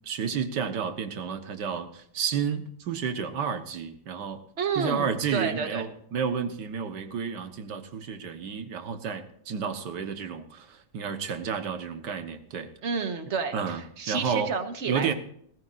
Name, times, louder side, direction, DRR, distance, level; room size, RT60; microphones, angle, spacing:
voice 1, 0.0-4.4 4.8-12.7 13.5-13.8 14.1-14.5 14.9-15.1, right 6 dB, 85° right, 8 dB, 1.8 m, -31 dB
voice 2, 4.6-5.8 12.8-15.1, right 5 dB, 45° right, 8 dB, 1.5 m, -30 dB
19.5 x 14.0 x 2.6 m, 0.67 s
omnidirectional pair, 1.8 m